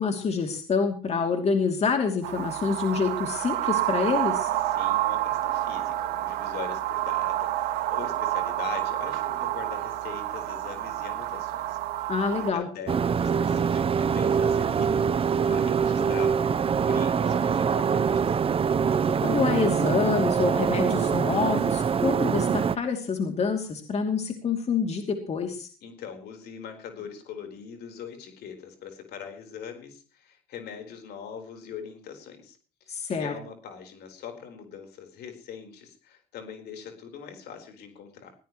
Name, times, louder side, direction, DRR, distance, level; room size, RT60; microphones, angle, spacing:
voice 1, 0.0-4.5 12.1-12.7 19.2-25.7 32.9-33.3, left 5 dB, 40° left, 4 dB, 2.8 m, -27 dB
sound 1, 2.2-12.5, right 14 dB, 85° right, 2.0 m, -29 dB
voice 2, 4.6-18.4 25.8-32.6 32.9-38.3, left 7 dB, 75° left, 5 dB, 4.3 m, -42 dB
sound 2, 12.9-22.8, right 6 dB, 35° right, 0.7 m, -24 dB
20.5 x 17.0 x 3.1 m, 0.35 s
cardioid pair, 110°, 17 cm